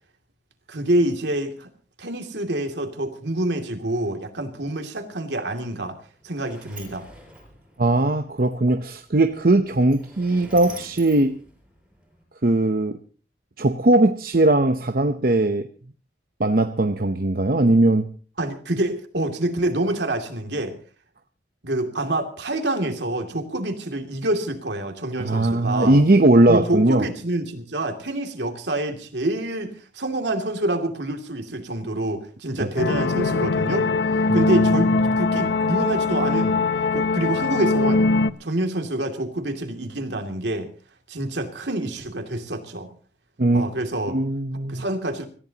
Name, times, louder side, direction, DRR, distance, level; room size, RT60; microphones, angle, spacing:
voice 1, 0.7-1.7 2.0-6.0 6.2-7.0 18.4-20.8 21.6-26.0 26.5-33.9 34.3-36.6 36.9-38.1 38.4-40.7 41.1-42.9 43.5-44.2 44.7-45.3, right 1 dB, 70° right, 2.7 m, -27 dB
Sliding door, 5.8-12.2, right 2 dB, 5° right, 5.7 m, -46 dB
voice 2, 7.8-11.4 12.4-13.0 13.6-15.7 16.4-18.1 25.2-27.0 32.6-32.7 34.3-34.5 43.4-43.7 44.1-44.8, right 2 dB, 50° right, 0.8 m, -19 dB
sound 1, 32.8-38.3, left 3 dB, 70° left, 0.7 m, -21 dB
26.5 x 15.0 x 2.9 m
head